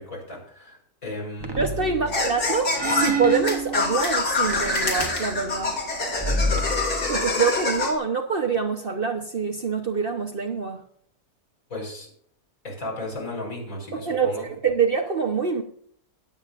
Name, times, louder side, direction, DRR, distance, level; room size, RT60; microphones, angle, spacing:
voice 1, 0.0-2.1 11.7-12.1 12.6-14.5, left 1 dB, 60° left, -1 dB, 5.4 m, -35 dB
sound 1, 1.4-2.3 2.7-4.1 4.4-5.8 6.1-7.3, right 2 dB, 20° right, 1.0 m, -29 dB
voice 2, 1.6-5.8 7.1-10.8 13.9-15.6, right 5 dB, 40° right, 3 dB, 1.1 m, -25 dB
sound 2, 2.1-7.9, left 3 dB, 90° left, 3.5 m, -26 dB
22.5 x 8.8 x 2.6 m, 0.62 s
omnidirectional pair, 1.6 m